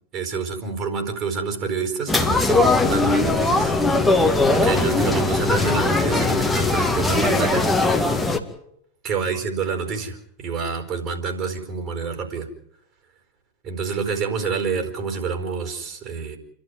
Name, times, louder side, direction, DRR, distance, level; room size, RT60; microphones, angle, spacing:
voice 1, 0.1-3.7 4.5-7.7 9.0-12.5 13.6-16.4, right 5 dB, 35° right, 6 dB, 4.7 m, -27 dB
sound 1, 2.1-8.4, left 3 dB, 5° left, 2.1 m, -20 dB
29.5 x 12.5 x 9.5 m, 0.72 s
figure-of-eight pair, 90°, 0 cm